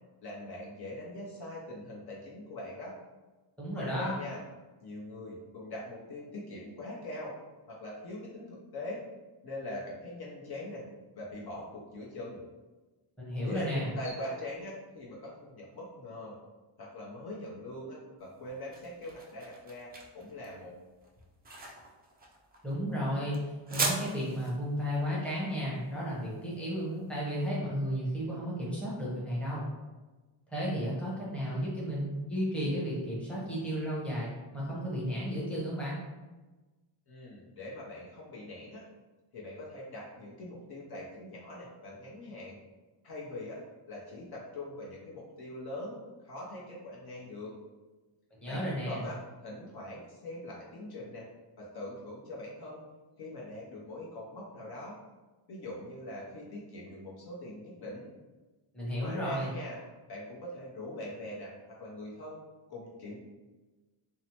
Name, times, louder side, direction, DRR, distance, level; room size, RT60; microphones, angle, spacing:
voice 1, 0.2-3.0 3.7-4.4 4.8-7.3 7.7-9.0 9.4-10.8 11.2-12.4 13.4-16.4 16.8-20.7 37.1-38.8 39.3-42.6 43.0-43.6 43.9-47.5 48.5-49.1 49.4-51.3 51.6-52.8 53.2-55.0 55.5-58.1 59.0-59.8 60.1-62.4 62.7-63.2, left 1 dB, 50° left, -4 dB, 0.7 m, -42 dB
voice 2, 3.6-4.2 13.2-13.9 22.6-29.7 30.5-36.0 48.4-49.0 58.7-59.5, equal, ahead, -7 dB, 0.8 m, -33 dB
sound 1, 18.2-27.2, right 3 dB, 20° right, 0.3 m, -39 dB
2.7 x 2.1 x 2.9 m, 1.2 s
cardioid pair, 110°, 50 cm